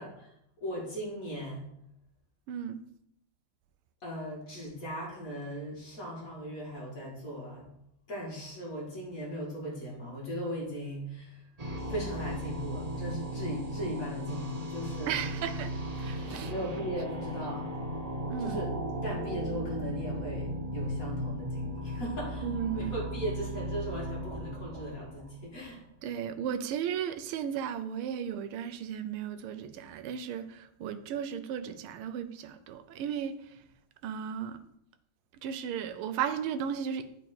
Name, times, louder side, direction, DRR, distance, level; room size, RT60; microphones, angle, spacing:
voice 1, 0.0-1.7 4.0-7.7 8.1-15.2 16.4-17.8 18.4-25.8, right 1 dB, 40° left, 2.4 m, -38 dB
voice 2, 2.5-2.8 15.1-15.7 16.0-16.5 18.3-18.6 22.4-22.9 26.0-33.6 34.0-34.6 35.4-37.1, right 8 dB, 90° right, 1.5 m, -35 dB
sound 1, 11.6-25.7, equal, 25° right, 0.9 m, -36 dB
9.0 x 5.0 x 4.4 m
omnidirectional pair, 2.3 m